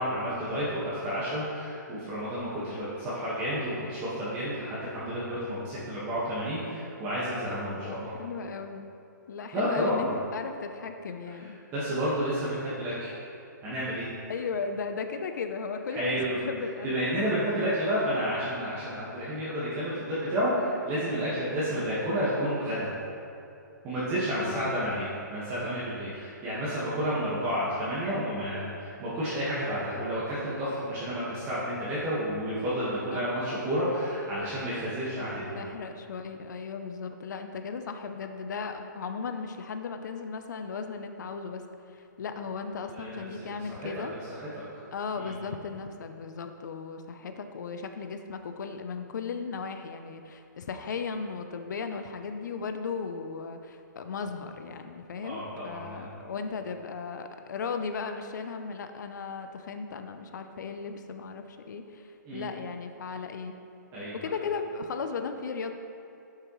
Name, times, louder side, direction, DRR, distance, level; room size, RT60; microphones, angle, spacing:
voice 1, 0.0-8.1 9.5-10.1 11.7-13.1 13.6-14.1 15.9-16.4 16.8-22.9 23.8-35.6 42.9-43.9 44.3-44.5 45.1-45.3 55.2-56.1 62.3-62.5 63.9-64.1, equal, 25° right, -10 dB, 1.6 m, -31 dB
voice 2, 7.8-8.9 9.3-11.6 14.3-16.9 24.4-24.7 33.1-33.2 35.5-41.6 41.9-44.1 44.9-63.6 64.1-65.7, left 5 dB, 65° left, 7 dB, 0.7 m, -36 dB
10.0 x 6.7 x 3.2 m, 2.7 s
hypercardioid pair, 150°, 10 cm